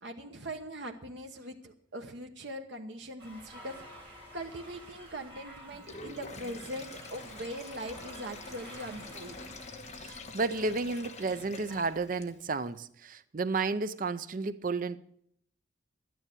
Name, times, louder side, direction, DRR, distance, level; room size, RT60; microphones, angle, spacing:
voice 1, 0.0-4.1 4.3-9.6, right 1 dB, 70° right, 1.1 m, -41 dB
sound 1, 3.2-11.9, equal, 30° right, 5.4 m, -51 dB
Sink (filling or washing), 5.7-12.6, left 3 dB, 35° left, 1.3 m, -47 dB
voice 2, 10.0-15.0, right 3 dB, 45° right, 0.5 m, -32 dB
12.0 x 9.9 x 6.6 m
head